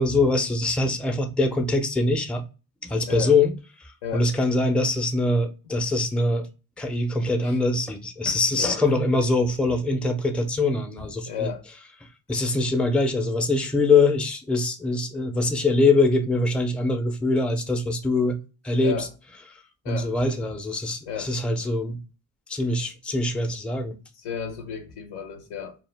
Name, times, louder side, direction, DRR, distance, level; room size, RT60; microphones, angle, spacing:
voice 1, 0.0-2.4 2.8-3.5 4.1-6.5 6.8-11.5 12.3-18.4 18.6-19.1 19.9-22.0 22.5-24.0, left 2 dB, ahead, 0.4 m, -23 dB
voice 2, 8.2-8.8 11.0-11.6 18.8-19.1 19.8-20.1 21.1-21.3 24.2-25.8, left 7 dB, 85° left, 0.7 m, -33 dB
2.4 x 2.0 x 3.1 m
supercardioid pair, 40°, 48 cm